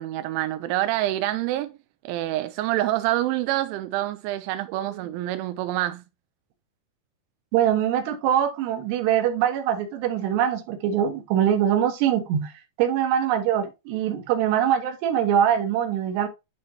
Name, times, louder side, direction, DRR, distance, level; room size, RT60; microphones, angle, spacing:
voice 1, 0.0-1.8 2.0-6.0, right 15 dB, 90° right, 3.0 m, -26 dB
voice 2, 7.5-12.5 12.8-16.3, right 9 dB, 70° right, 3.3 m, -23 dB
11.0 x 4.3 x 3.0 m
omnidirectional pair, 5.3 m